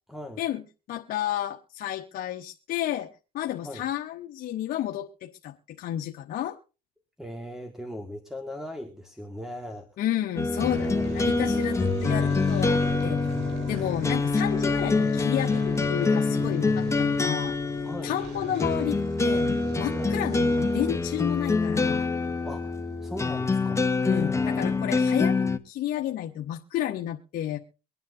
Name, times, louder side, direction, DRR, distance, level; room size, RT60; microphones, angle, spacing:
voice 1, 0.1-0.4 3.6-3.9 7.2-9.9 10.9-11.6 17.8-18.1 20.0-20.1 22.4-25.1, left 1 dB, ahead, 5 dB, 1.9 m, -39 dB
voice 2, 0.9-6.6 10.0-13.3 13.7-17.6 18.0-22.1 24.0-27.6, left 12 dB, 60° left, 3 dB, 1.1 m, -31 dB
sound 1, 10.4-25.6, left 3 dB, 15° left, 1.0 m, -26 dB
sound 2, 10.6-23.5, right 4 dB, 85° right, 3.8 m, -41 dB
24.0 x 9.4 x 2.7 m, 0.32 s
supercardioid pair, 90°, 17 cm